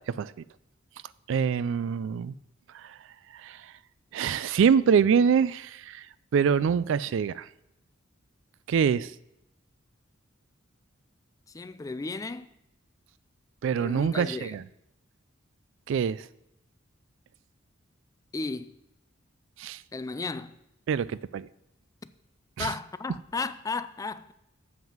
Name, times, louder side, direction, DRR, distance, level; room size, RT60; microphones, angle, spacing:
voice 1, 1.3-2.3 3.4-3.6 4.1-6.0 6.3-7.5 8.7-9.1 13.6-14.6 15.9-16.2 19.6-19.8 20.9-21.5 22.6-22.7, right 7 dB, 65° right, 0.3 m, -24 dB
voice 2, 11.5-12.5 13.8-14.6 18.3-18.7 19.9-20.5 22.6-24.3, left 3 dB, 15° left, 0.3 m, -34 dB
7.4 x 5.9 x 7.2 m
head